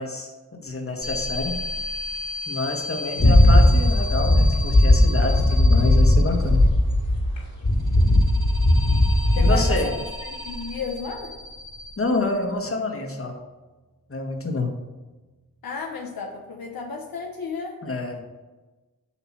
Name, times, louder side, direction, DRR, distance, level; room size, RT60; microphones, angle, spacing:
voice 1, 0.0-1.5 2.5-6.6 9.3-9.9 12.0-13.3 14.1-14.7 17.8-18.4, left 2 dB, 40° left, 2 dB, 1.4 m, -27 dB
sound 1, 1.0-6.8 7.7-12.6, left 2 dB, 60° right, 2.5 m, -34 dB
sound 2, 3.2-7.4 7.6-9.8, left 1 dB, 55° left, 2.1 m, -17 dB
voice 2, 9.4-11.3 15.6-17.8, left 5 dB, 80° left, 1 dB, 0.8 m, -33 dB
8.4 x 3.0 x 6.0 m, 1.2 s
cardioid pair, 40°, 35 cm